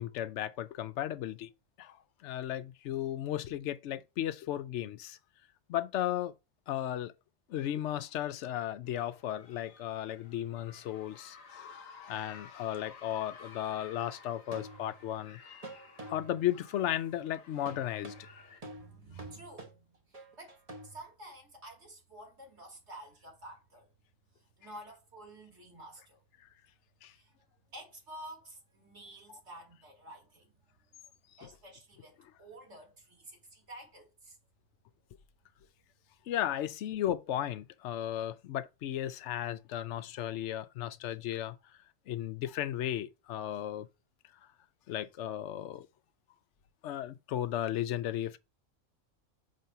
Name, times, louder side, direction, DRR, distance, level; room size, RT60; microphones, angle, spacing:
voice 1, 0.0-1.5 1.8-2.0 2.2-5.2 5.7-6.3 6.7-7.1 7.5-15.4 16.1-18.3 24.6-24.8 27.0-27.1 29.3-29.4 31.4-31.5 32.2-32.3 36.3-41.6 42.1-43.9 44.9-45.9 46.8-48.4, left 12 dB, 70° left, 0.8 m, -35 dB
sound 1, 8.9-18.6, left 5 dB, 90° left, 1.3 m, -54 dB
sound 2, 12.7-12.8 14.5-15.2 15.6-16.5 17.7-21.0, right 1 dB, 30° right, 1.1 m, -48 dB
voice 2, 18.7-20.6 20.8-23.9 24.3-26.2 27.1-27.3 27.7-30.8 31.4-34.4, right 1 dB, 60° right, 2.6 m, -50 dB
6.4 x 2.6 x 5.6 m
omnidirectional pair, 1.3 m